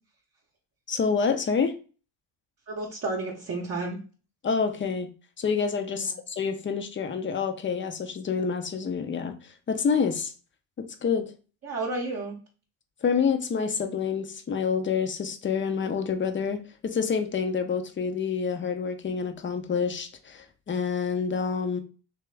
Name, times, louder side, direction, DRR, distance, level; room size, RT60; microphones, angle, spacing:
voice 1, 0.9-1.8 4.4-5.1 5.4-10.3 10.8-11.3 13.0-21.8, left 6 dB, 25° left, 0.6 m, -28 dB
voice 2, 2.7-4.0 6.0-6.1 11.6-12.4, right 2 dB, 35° right, 0.8 m, -31 dB
3.5 x 2.9 x 3.3 m
cardioid pair, 95°, 45 cm